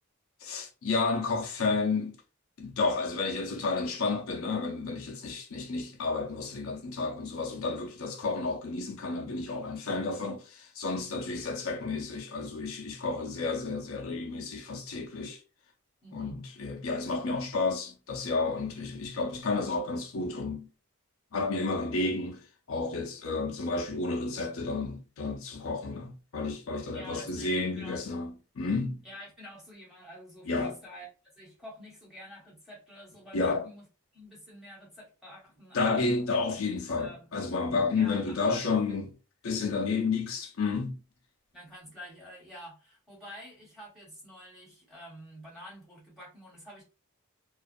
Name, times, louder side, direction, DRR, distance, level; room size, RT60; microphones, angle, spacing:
voice 1, 0.4-2.2 2.6-15.4 16.1-20.7 21.3-29.0 30.5-30.8 33.3-33.6 35.7-39.1 39.4-41.0, left 3 dB, 70° left, 0.6 m, -31 dB
voice 2, 16.0-16.4 26.9-28.0 29.0-31.1 31.4-33.8 34.1-36.1 36.9-37.4 38.0-39.0 41.5-46.8, equal, ahead, 1.3 m, -48 dB
2.4 x 2.4 x 2.5 m
head